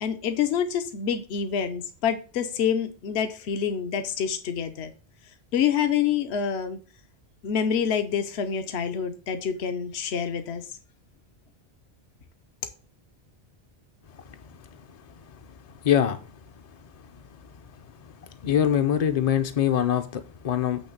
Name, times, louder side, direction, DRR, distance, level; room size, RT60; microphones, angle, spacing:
voice 1, 0.0-4.9 5.5-6.8 7.4-10.7, left 8 dB, 80° left, 8 dB, 1.0 m, -27 dB
voice 2, 15.8-16.2 18.4-20.8, left 9 dB, 50° left, 7 dB, 0.5 m, -23 dB
8.6 x 3.1 x 6.5 m, 0.40 s
omnidirectional pair, 1.1 m